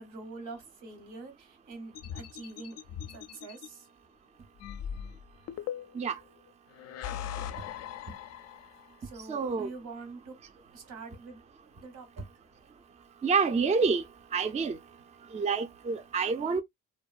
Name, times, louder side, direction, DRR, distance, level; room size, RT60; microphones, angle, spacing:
voice 1, 0.0-2.8 3.1-3.9 9.0-10.3 10.7-11.4 11.8-12.2, right 3 dB, 80° right, 1.0 m, -45 dB
sound 1, 2.0-3.7 4.6-6.1 6.7-8.9, left 9 dB, 55° left, 0.4 m, -40 dB
voice 2, 9.3-9.7 13.2-14.0 14.3-14.8 15.3-16.6, right 5 dB, 25° right, 0.4 m, -27 dB
2.6 x 2.1 x 2.3 m
cardioid pair, 90°, 30 cm